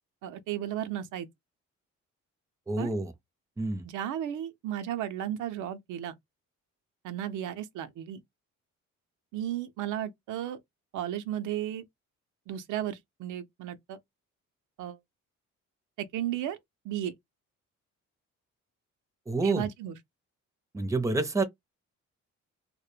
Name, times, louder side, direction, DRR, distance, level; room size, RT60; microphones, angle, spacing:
voice 1, 0.2-1.3 2.8-2.9 3.8-6.1 7.0-8.2 9.3-10.6 10.9-11.8 12.5-14.0 14.8-15.0 16.0-16.6 16.8-17.1 19.4-20.0, right 11 dB, 85° right, 0.5 m, -34 dB
voice 2, 2.7-3.1 3.6-3.8 19.3-19.7 20.7-21.4, right 3 dB, 10° right, 0.5 m, -28 dB
2.1 x 2.1 x 3.1 m
cardioid pair, 90°, 30 cm